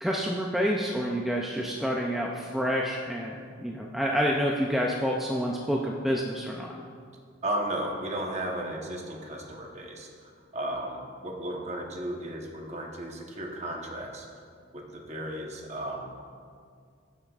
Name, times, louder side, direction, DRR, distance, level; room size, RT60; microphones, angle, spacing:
voice 1, 0.0-6.7, equal, ahead, -2 dB, 0.4 m, -28 dB
voice 2, 7.4-10.1 10.5-14.3 14.7-16.1, right 1 dB, 35° right, 0 dB, 1.0 m, -34 dB
14.5 x 7.3 x 2.4 m, 2.2 s
head